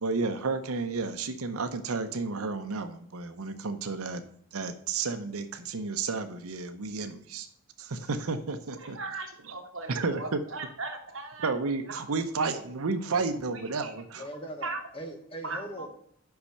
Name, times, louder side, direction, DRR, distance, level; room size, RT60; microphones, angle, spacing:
voice 1, 0.0-4.2 4.5-7.5 7.8-9.0 9.9-10.4 11.4-14.2, right 4 dB, 80° right, 8 dB, 0.7 m, -32 dB
voice 2, 8.7-11.5 11.9-12.0 12.4-12.6 13.5-13.9 14.6-14.8 15.4-15.9, right 3 dB, 60° right, 3 dB, 1.6 m, -38 dB
voice 3, 14.2-15.9, right 1 dB, 25° left, 4 dB, 1.3 m, -41 dB
5.7 x 5.5 x 6.5 m, 0.65 s
head